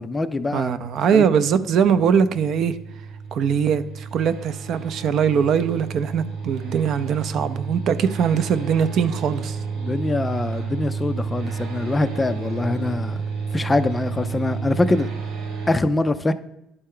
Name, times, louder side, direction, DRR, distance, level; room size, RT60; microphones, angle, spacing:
voice 1, 0.0-0.7 1.1-1.2 9.8-13.2 13.5-15.1 15.7-16.3, left 2 dB, 15° left, 0.3 m, -23 dB
voice 2, 0.5-2.8 3.3-9.6, right 7 dB, 50° right, 0.5 m, -21 dB
sound 1, 1.1-15.7, right 5 dB, 90° right, 1.4 m, -31 dB
11.0 x 4.3 x 3.7 m
cardioid pair, 145°, 0 cm